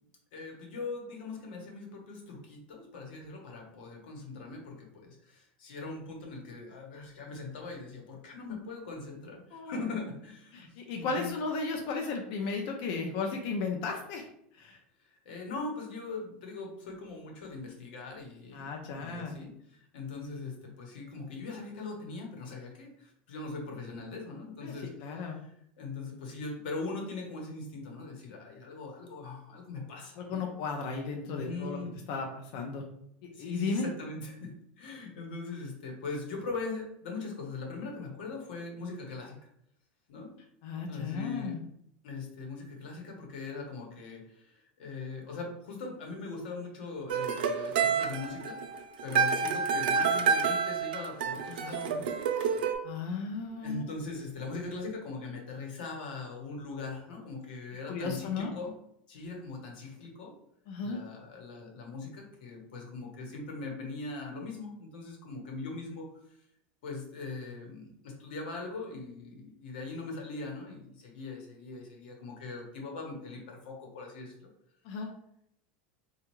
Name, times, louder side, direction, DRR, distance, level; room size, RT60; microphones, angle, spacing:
voice 1, 0.3-10.7 10.9-11.3 15.0-30.5 31.3-31.9 33.3-39.3 40.1-40.3 40.9-41.6 42.0-52.1 53.6-58.8 59.1-60.3 60.8-66.1 66.8-74.4, left 3 dB, 80° left, 1 dB, 1.1 m, -41 dB
voice 2, 10.5-14.3 14.6-14.8 18.5-19.4 24.6-24.7 25.0-25.4 30.2-31.8 32.1-32.3 32.5-32.8 33.4-33.9 40.6-41.6 52.8-53.8 57.9-58.5 60.7-61.0 74.8-75.1, left 4 dB, 60° left, 2 dB, 0.6 m, -34 dB
sound 1, 47.1-52.7, right 6 dB, 85° right, 0.5 m, -29 dB
4.2 x 2.4 x 3.0 m, 0.72 s
supercardioid pair, 145°, 5 cm